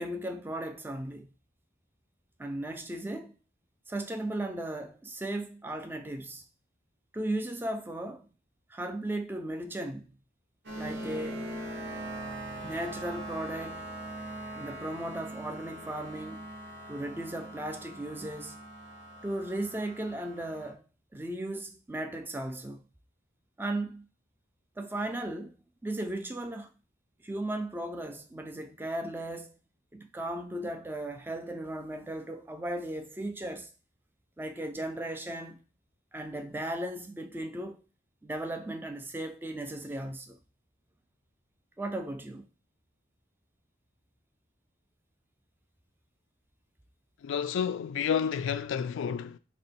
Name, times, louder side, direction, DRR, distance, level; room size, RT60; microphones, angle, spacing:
voice 1, 0.0-1.3 2.4-3.3 3.9-6.4 7.1-8.3 8.7-10.2 10.8-11.4 12.6-13.9 14.6-16.5 16.9-18.6 19.2-20.8 21.1-22.9 23.6-24.1 24.8-25.6 25.8-26.7 27.2-29.5 29.9-33.7 34.4-35.6 36.1-37.8 38.2-40.4 41.8-42.5, right 1 dB, 10° right, 0.3 m, -36 dB
sound 1, 10.6-20.7, right 1 dB, 60° right, 0.8 m, -41 dB
voice 2, 47.2-49.4, left 7 dB, 85° left, 0.3 m, -30 dB
3.7 x 2.1 x 3.7 m
head